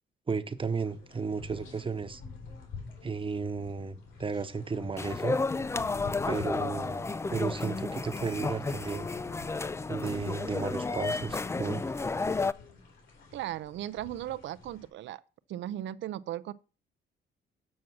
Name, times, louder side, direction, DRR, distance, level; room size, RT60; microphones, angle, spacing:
voice 1, 0.3-2.2 3.0-5.4 6.3-9.1 9.9-11.8, right 5 dB, 25° right, 0.9 m, -34 dB
sound 1, 0.7-14.9, left 4 dB, 70° left, 4.0 m, -48 dB
sound 2, 5.0-12.5, left 3 dB, 15° left, 0.3 m, -32 dB
voice 2, 13.3-15.2 15.5-16.5, right 12 dB, 70° right, 0.5 m, -37 dB
7.2 x 6.1 x 6.2 m
cardioid pair, 90°, 20 cm